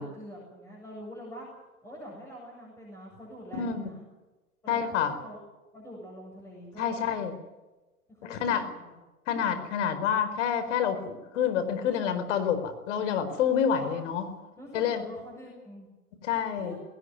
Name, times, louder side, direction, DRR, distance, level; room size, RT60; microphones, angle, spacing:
voice 1, 0.0-1.5 1.8-4.1 4.6-5.5 5.7-6.9 8.1-8.9 13.8-14.1 14.6-15.9 16.6-16.8, equal, 5° left, -3 dB, 7.8 m, -45 dB
voice 2, 3.6-3.9 4.7-5.1 6.8-7.3 8.3-8.7 9.3-14.2 14.7-15.0 16.2-16.8, left 8 dB, 50° left, 9 dB, 4.7 m, -28 dB
20.0 x 18.5 x 9.6 m, 1.1 s
hypercardioid pair, 130°, 45 cm